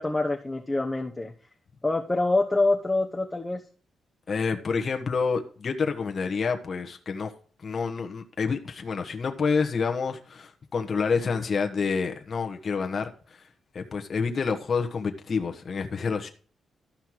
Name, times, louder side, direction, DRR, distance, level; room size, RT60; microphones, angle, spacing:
voice 1, 0.0-1.3 1.8-3.6, left 2 dB, 15° left, 1 dB, 1.1 m, -25 dB
voice 2, 4.3-7.3 7.6-13.4 13.7-16.3, left 5 dB, 40° left, 4 dB, 1.3 m, -28 dB
13.0 x 5.7 x 4.6 m, 0.41 s
cardioid pair, 120°, 0 cm